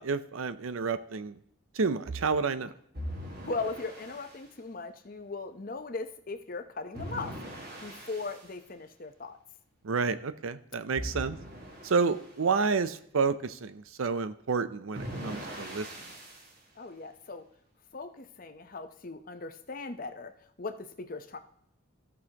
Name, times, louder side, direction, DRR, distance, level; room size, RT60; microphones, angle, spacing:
voice 1, 0.0-1.3 1.7-2.7 9.8-11.4 11.8-15.9, right 4 dB, 80° right, 13 dB, 0.6 m, -30 dB
sound 1, 2.9-4.4 6.9-8.4 10.9-12.3 14.9-16.5, equal, 50° right, 1.9 m, -41 dB
voice 2, 3.4-7.3 7.8-9.4 16.8-17.4 17.9-21.4, left 3 dB, 40° left, 8 dB, 0.8 m, -38 dB
15.5 x 6.3 x 2.9 m, 0.70 s
head